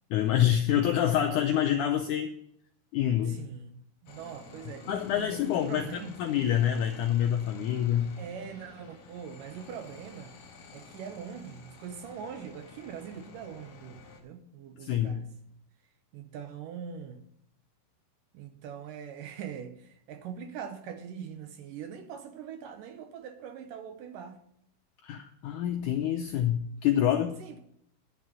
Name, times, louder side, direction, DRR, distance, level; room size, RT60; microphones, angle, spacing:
voice 1, 0.1-2.3 2.9-3.4 4.9-8.1 14.8-15.2 25.0-27.4, left 10 dB, 90° left, 1.8 m, -27 dB
voice 2, 3.2-6.1 8.2-10.3 10.7-15.3 16.1-17.2 18.3-24.4 25.1-25.2 27.4-27.6, right 7 dB, 75° right, 2.2 m, -42 dB
sound 1, 4.1-14.2, left 5 dB, 55° left, 2.8 m, -51 dB
10.5 x 6.2 x 6.9 m
omnidirectional pair, 4.4 m